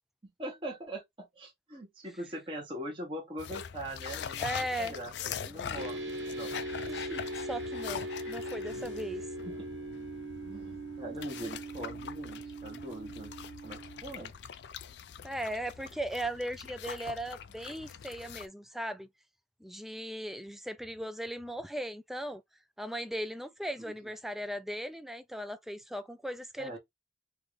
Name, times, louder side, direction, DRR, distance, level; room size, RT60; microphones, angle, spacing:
voice 1, 0.4-6.6 9.4-9.7 10.4-13.3 13.6-14.5 23.8-23.9 26.6-26.8, right 1 dB, 30° right, 1.1 m, -42 dB
sound 1, 3.4-18.5, left 7 dB, 65° left, 0.4 m, -43 dB
voice 2, 4.4-4.9 6.9-9.2 15.2-19.1 19.6-22.4 22.8-26.8, right 1 dB, ahead, 0.3 m, -38 dB
sound 2, 5.8-14.0, right 1 dB, 85° right, 1.2 m, -40 dB
3.5 x 2.5 x 3.2 m
head